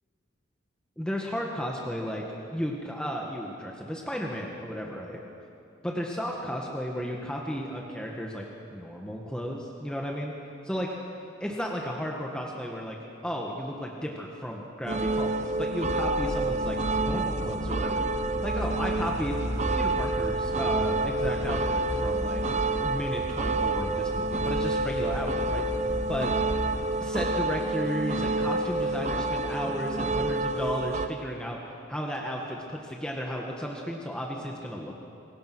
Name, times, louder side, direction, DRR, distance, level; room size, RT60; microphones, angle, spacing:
voice 1, 1.0-2.2 2.5-5.2 5.8-8.4 8.7-10.3 10.6-10.9 11.4-13.0 13.2-19.4 19.7-22.4 22.8-25.6 26.1-26.3 27.0-31.6 31.9-35.0, equal, 5° left, -1 dB, 1.7 m, -34 dB
sound 1, 14.9-31.1, right 2 dB, 35° right, 0.8 m, -28 dB
sound 2, 16.0-26.8, equal, 60° left, 5.6 m, -36 dB
27.0 x 22.0 x 6.2 m, 2.6 s
head